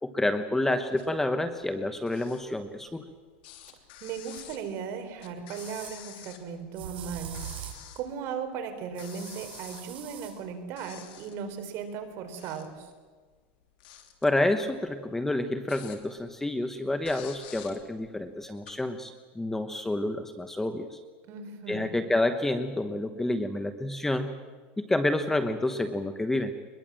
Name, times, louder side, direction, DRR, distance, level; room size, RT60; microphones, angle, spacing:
voice 1, 0.0-3.0 14.2-20.9 21.7-24.3 24.8-26.5, left 1 dB, 5° left, 8 dB, 1.1 m, -29 dB
sound 1, 1.0-1.3 1.6-3.1 3.4-6.8 7.1-8.1 8.5-8.6 8.9-10.5 10.8-11.5 12.1-12.9 13.3-16.3 16.7-16.8 17.0-18.7, left 11 dB, 70° left, 3.2 m, -49 dB
voice 2, 4.0-12.9 21.3-21.9, right 6 dB, 45° right, 6 dB, 4.1 m, -37 dB
sound 2, 4.4-4.5 5.5-6.0 6.8-7.9 9.0-10.4, right 10 dB, 90° right, 6.7 m, -42 dB
23.5 x 21.5 x 7.7 m, 1.5 s
supercardioid pair, 145°, 6 cm